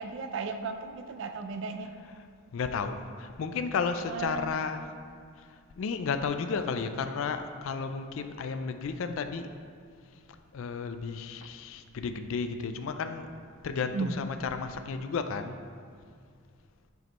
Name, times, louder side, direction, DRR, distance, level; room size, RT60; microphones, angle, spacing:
voice 1, 0.0-1.9 4.1-4.6 13.9-14.2, right 4 dB, 60° right, 7 dB, 0.5 m, -35 dB
voice 2, 2.5-4.9 5.8-9.5 10.5-13.3 13.6-15.6, left 5 dB, 65° left, 8 dB, 0.4 m, -33 dB
7.6 x 5.1 x 3.0 m, 2.2 s
head